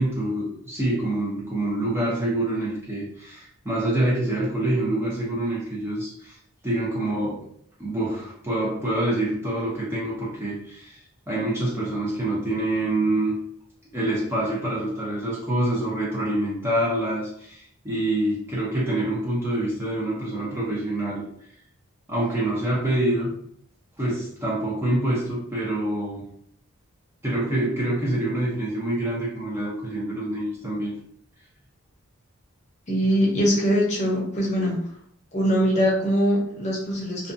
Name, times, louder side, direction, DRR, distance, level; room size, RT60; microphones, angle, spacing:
voice 1, 0.0-6.4 6.6-7.4 7.8-11.0 11.3-13.3 13.9-21.2 22.1-23.3 24.0-26.3 27.2-30.9, right 1 dB, 10° right, -6 dB, 0.5 m, -26 dB
voice 2, 32.9-34.8 35.3-37.3, equal, 30° left, -4 dB, 0.7 m, -22 dB
2.5 x 2.3 x 2.5 m, 0.64 s
head